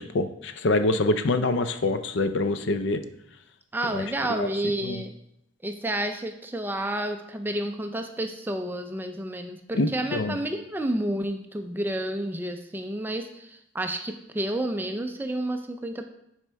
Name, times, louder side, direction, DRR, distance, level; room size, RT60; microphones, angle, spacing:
voice 1, 0.0-3.0 3.9-4.0 4.3-4.5 4.8-5.0 9.7-10.4, left 2 dB, 60° left, 10 dB, 0.5 m, -25 dB
voice 2, 3.7-5.1 5.6-16.1, right 1 dB, 10° right, 6 dB, 0.4 m, -30 dB
10.5 x 4.3 x 3.4 m, 0.80 s
head